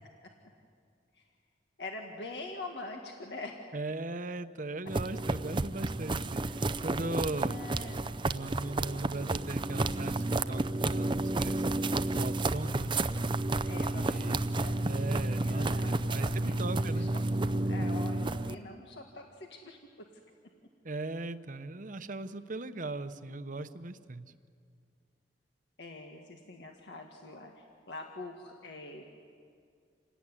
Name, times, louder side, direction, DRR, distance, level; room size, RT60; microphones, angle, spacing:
voice 1, 1.8-3.6 7.5-8.1 13.6-14.9 15.4-17.1 17.5-19.8 25.8-29.0, left 2 dB, 75° left, 2 dB, 1.9 m, -44 dB
voice 2, 3.7-7.6 8.3-11.7 12.1-12.9 13.9-14.5 14.8-17.1 20.8-24.3, right 2 dB, 50° right, 10 dB, 0.9 m, -38 dB
sound 1, 4.9-18.6, right 2 dB, 30° right, 0.6 m, -31 dB
27.5 x 17.5 x 9.9 m, 2.2 s
head